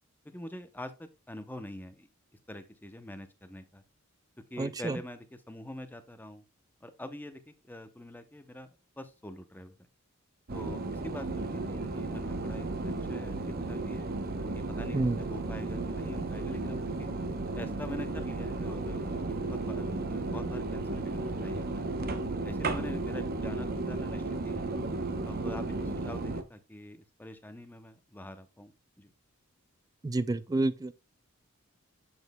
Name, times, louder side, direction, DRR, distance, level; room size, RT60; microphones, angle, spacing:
voice 1, 0.2-2.1 2.5-3.8 4.5-6.4 6.8-8.7 9.0-9.9 10.5-14.1 14.5-17.1 17.6-21.9 22.4-24.7 25.2-29.1, left 1 dB, 10° left, 0.7 m, -45 dB
voice 2, 4.6-5.0 14.9-15.2 30.0-30.9, right 2 dB, 20° right, 0.3 m, -29 dB
sound 1, 10.5-26.4, right 2 dB, 45° right, 0.7 m, -34 dB
7.1 x 6.1 x 2.2 m
head